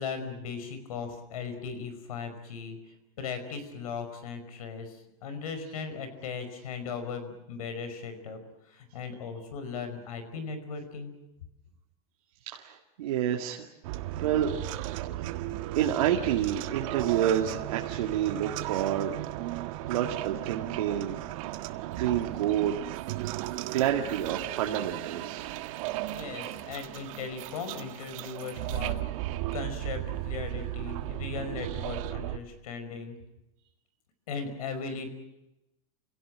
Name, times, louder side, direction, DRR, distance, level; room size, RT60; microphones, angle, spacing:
voice 1, 0.0-2.8 3.2-8.4 8.7-11.1 26.1-29.0 29.3-33.2 34.3-35.1, left 5 dB, 90° left, 10 dB, 5.3 m, -38 dB
voice 2, 12.5-13.7 14.2-14.5 15.2-15.3 15.7-19.2 19.9-21.2 22.0-22.9 23.7-25.5, right 10 dB, 85° right, 2 dB, 2.2 m, -28 dB
sound 1, 13.8-32.4, right 15 dB, 65° right, 1.5 m, -35 dB
28.5 x 17.5 x 9.0 m, 0.92 s
supercardioid pair, 135°, 18 cm